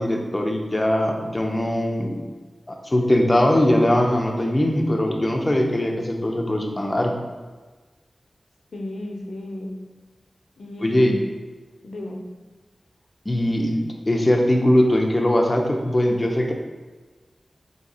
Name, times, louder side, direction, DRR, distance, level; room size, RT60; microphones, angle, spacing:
voice 1, 0.0-2.2 2.7-7.2 10.8-11.1 13.3-13.8 14.0-16.5, left 1 dB, 30° left, 2 dB, 0.6 m, -21 dB
voice 2, 8.7-9.8 10.6-11.2 11.8-12.3, left 1 dB, 80° left, 1 dB, 0.6 m, -33 dB
3.6 x 2.9 x 4.2 m, 1.3 s
cardioid pair, 45°, 0 cm